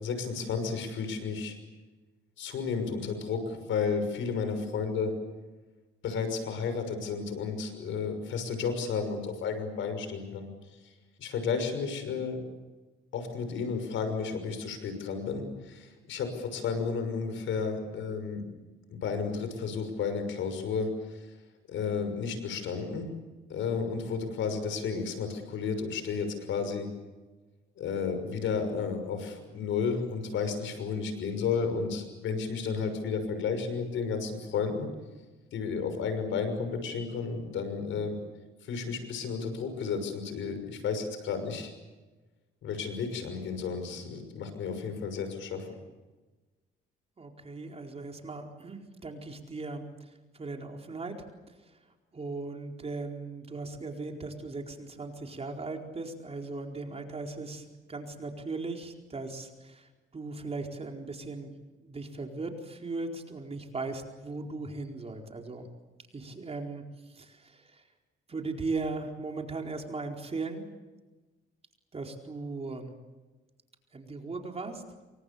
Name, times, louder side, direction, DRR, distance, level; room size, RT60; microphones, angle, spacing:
voice 1, 0.0-1.6 2.4-5.1 6.0-10.5 11.2-12.4 13.1-18.4 18.9-21.3 21.7-23.1 23.5-26.9 27.8-34.9 35.5-38.1 38.6-41.7 42.6-45.8, left 5 dB, 75° left, 8 dB, 6.2 m, -32 dB
voice 2, 47.2-49.8 50.3-51.1 51.6-51.7 52.1-61.5 61.8-65.7 66.1-66.8 67.1-67.8 68.3-70.7 71.9-72.9 73.9-74.8, right 3 dB, 30° right, 2 dB, 4.4 m, -38 dB
28.5 x 24.5 x 7.1 m, 1.2 s
cardioid pair, 90°, 20 cm